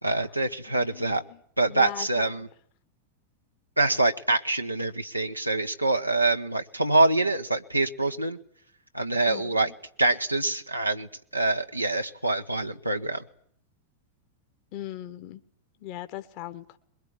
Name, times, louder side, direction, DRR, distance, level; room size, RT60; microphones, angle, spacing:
voice 1, 0.0-1.2 1.6-2.5 3.8-8.4 8.9-9.7 10.0-13.2, right 2 dB, 85° right, 5 dB, 1.2 m, -25 dB
voice 2, 0.7-1.4 1.7-2.3 9.3-9.7 14.7-15.4 15.8-16.8, left 12 dB, 45° left, 10 dB, 1.5 m, -39 dB
22.0 x 21.5 x 9.6 m, 0.63 s
figure-of-eight pair, 90°, 0 cm